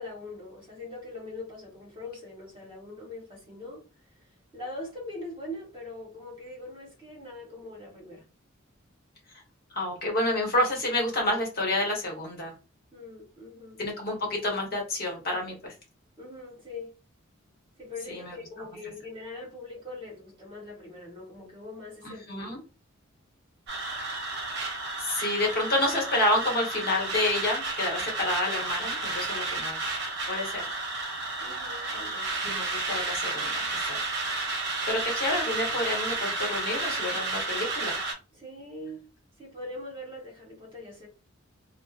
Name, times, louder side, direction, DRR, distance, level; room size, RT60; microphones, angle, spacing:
voice 1, 0.0-3.8 4.1-4.3 4.5-8.2 12.9-13.8 16.2-16.9 17.8-22.5 31.4-32.4 38.3-39.1 39.4-41.1, left 2 dB, 25° right, 1.2 m, -42 dB
voice 2, 9.7-12.5 13.8-15.7 18.1-18.4 22.0-22.6 25.0-29.8 30.3-30.6 32.4-34.0 34.9-38.0, left 1 dB, 45° left, 1.0 m, -29 dB
sound 1, 23.7-38.1, right 3 dB, 55° right, 0.7 m, -32 dB
2.6 x 2.1 x 2.4 m
head